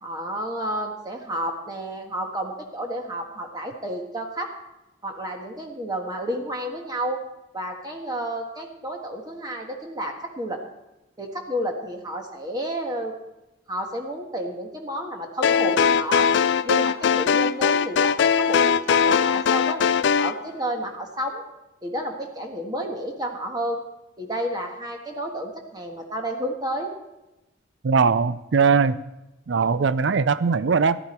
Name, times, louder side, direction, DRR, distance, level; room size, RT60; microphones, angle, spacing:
voice 1, 0.0-4.5 5.0-7.2 7.5-10.6 11.2-13.1 13.7-16.3 16.6-21.4 21.8-23.8 24.2-26.9, right 1 dB, 20° right, 2 dB, 1.4 m, -31 dB
sound 1, 15.4-20.4, left 6 dB, 60° left, 0.4 m, -20 dB
voice 2, 27.8-29.0 29.5-31.0, right 5 dB, 65° right, 15 dB, 0.5 m, -20 dB
14.0 x 12.5 x 4.4 m, 0.96 s
head